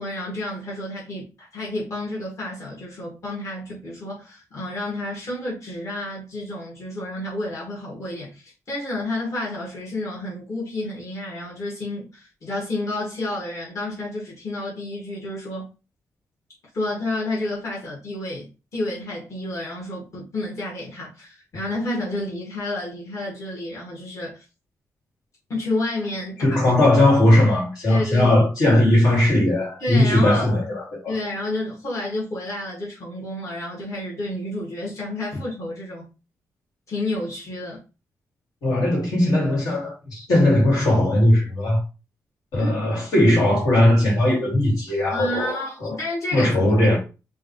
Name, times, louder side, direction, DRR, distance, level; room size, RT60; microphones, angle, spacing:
voice 1, 0.0-15.7 16.7-24.4 25.5-26.6 27.9-28.3 29.8-30.5 31.1-36.1 36.9-37.8 42.6-42.7 45.0-46.5, left 1 dB, 55° left, 2.0 m, -30 dB
voice 2, 26.4-31.1 38.6-41.8 42.5-46.0 46.3-47.0, left 1 dB, 75° left, 2.5 m, -18 dB
5.6 x 2.7 x 3.2 m
cardioid pair, 90°, 6 cm